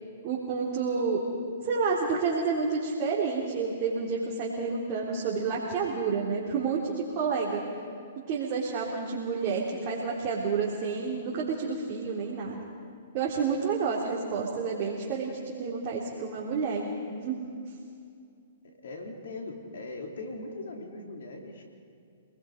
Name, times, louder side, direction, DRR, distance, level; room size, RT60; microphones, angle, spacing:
voice 1, 0.2-1.2 1.6-7.6 8.3-12.6 13.1-17.4, right 5 dB, 40° right, -4 dB, 3.6 m, -29 dB
voice 2, 18.8-21.6, left 2 dB, 70° left, 2 dB, 3.7 m, -40 dB
28.5 x 20.0 x 5.2 m, 2.4 s
hypercardioid pair, 125°, 0 cm